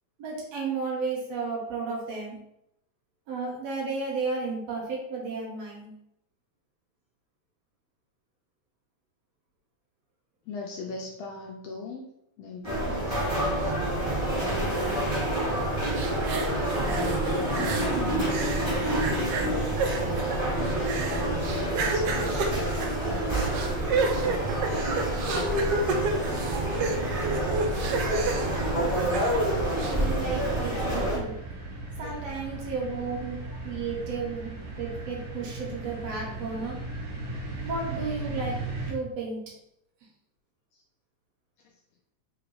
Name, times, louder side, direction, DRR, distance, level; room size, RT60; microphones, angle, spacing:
voice 1, 0.2-2.4 3.3-5.9 24.8-24.9 28.8-28.9 29.3-31.4 32.0-36.8 37.6-39.5, right 4 dB, 70° right, -2 dB, 2.0 m, -33 dB
voice 2, 10.5-13.7 14.4-15.1 16.8-22.5 28.7-28.9 30.0-30.1 31.3-31.4 32.0-32.2 40.7-40.8, left 5 dB, 80° left, 0 dB, 1.5 m, -39 dB
sound 1, 12.6-31.2, right 1 dB, 15° right, 0.9 m, -28 dB
sound 2, 15.9-18.0 18.3-29.4 29.8-29.9, right 3 dB, 85° right, 1.3 m, -31 dB
sound 3, 25.5-38.9, right 2 dB, 45° right, 1.2 m, -38 dB
4.0 x 3.9 x 3.0 m, 0.79 s
omnidirectional pair, 3.3 m